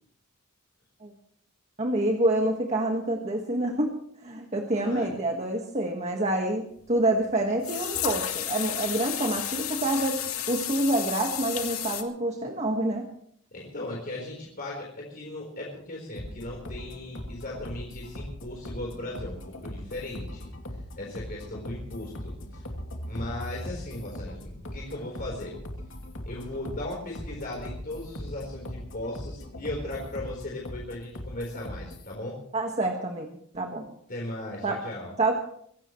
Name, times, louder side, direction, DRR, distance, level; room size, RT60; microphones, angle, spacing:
voice 1, 1.8-13.1 32.5-33.9 34.6-34.8 35.2-35.4, right 1 dB, 35° right, 2 dB, 1.6 m, -27 dB
voice 2, 4.7-5.1 13.5-20.5 21.0-22.7 23.0-25.6 26.3-32.4 34.1-35.1, left 1 dB, 45° left, -2 dB, 4.2 m, -37 dB
sound 1, 6.8-6.9 7.6-12.0, left 11 dB, 85° left, 2.2 m, -32 dB
sound 2, 16.2-32.1, left 1 dB, 60° left, 2.8 m, -39 dB
24.0 x 17.0 x 3.2 m, 0.65 s
head